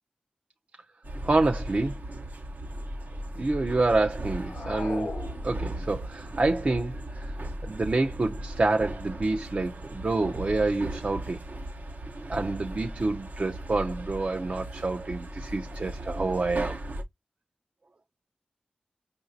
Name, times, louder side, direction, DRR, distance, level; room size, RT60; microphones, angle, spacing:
sound 1, 1.0-17.0, right 1 dB, 85° right, 1.0 m, -37 dB
voice 1, 1.2-2.0 3.4-5.2 5.4-7.4 7.6-11.4 12.3-16.8, right 3 dB, 50° right, 0.6 m, -27 dB
sound 2, 4.3-6.0, left 3 dB, 70° left, 0.6 m, -38 dB
5.8 x 2.6 x 2.6 m
wide cardioid pair, 75°, 3 cm